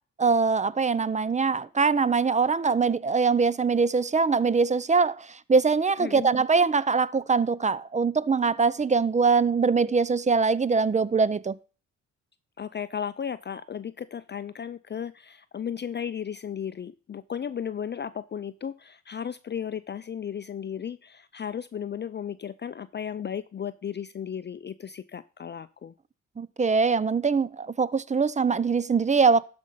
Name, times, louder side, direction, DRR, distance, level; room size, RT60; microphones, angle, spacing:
voice 1, 0.2-11.5 26.4-29.4, right 5 dB, 25° right, 0.6 m, -23 dB
voice 2, 6.0-6.3 12.6-25.9, left 8 dB, 35° left, 0.5 m, -35 dB
12.5 x 5.3 x 5.5 m
cardioid pair, 70°, 31 cm